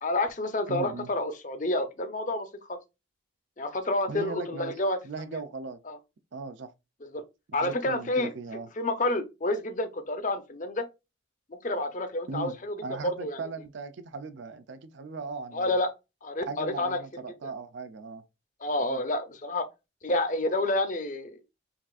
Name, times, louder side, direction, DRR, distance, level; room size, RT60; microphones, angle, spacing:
voice 1, 0.0-2.8 3.6-5.0 5.3-5.4 5.8-6.0 7.0-7.2 7.5-8.3 8.8-10.8 11.6-13.4 15.5-15.9 16.2-17.0 17.4-17.5 18.6-19.7 20.0-21.4, left 2 dB, 40° left, 0.6 m, -29 dB
voice 2, 0.7-1.1 4.1-4.7 5.0-5.8 6.3-6.7 7.6-8.7 12.3-12.6 12.8-15.7 16.5-18.2 18.8-19.0, right 4 dB, 65° right, 0.5 m, -38 dB
5.9 x 2.5 x 2.3 m
head